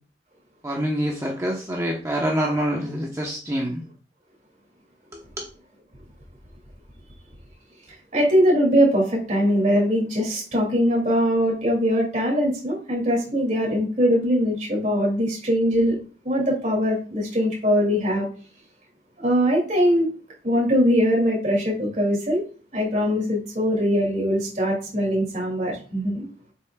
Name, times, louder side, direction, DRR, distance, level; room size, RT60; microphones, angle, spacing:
voice 1, 0.6-3.8 5.1-5.2, equal, 15° right, -1 dB, 1.0 m, -26 dB
voice 2, 8.1-16.0 16.2-18.2 19.2-20.1 20.4-22.4 22.7-26.3, equal, 40° right, -2 dB, 2.6 m, -21 dB
8.4 x 6.1 x 2.4 m, 0.39 s
head